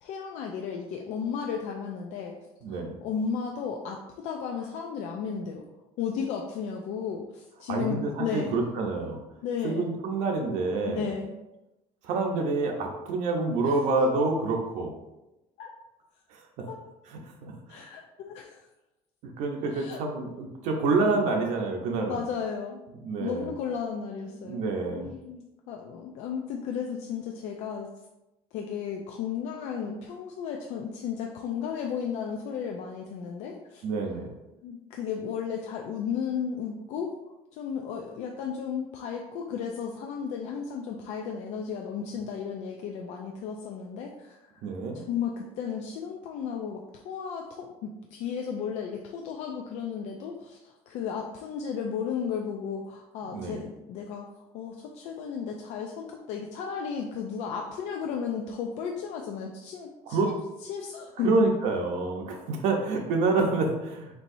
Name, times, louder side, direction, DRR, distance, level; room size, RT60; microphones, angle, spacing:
voice 1, 0.0-2.4 2.7-5.6 6.0-8.6 9.4-9.9 10.9-11.3 13.6-13.8 15.6-15.7 16.7-16.8 17.7-18.7 19.7-20.0 22.0-22.8 23.2-24.6 24.9-27.9 28.5-33.8 34.6-37.2 37.5-44.6 44.9-60.3 60.6-61.3, left 7 dB, 65° left, 1 dB, 0.5 m, -34 dB
voice 2, 2.6-2.9 7.7-9.2 9.6-11.1 12.0-14.9 16.3-16.7 17.1-17.8 19.2-22.2 23.0-23.5 24.4-25.1 33.8-34.3 44.6-45.0 53.3-53.6 60.1-60.3 61.2-64.2, right 3 dB, 70° right, 1 dB, 0.7 m, -27 dB
4.5 x 4.1 x 2.6 m, 0.97 s
cardioid pair, 170°, 13 cm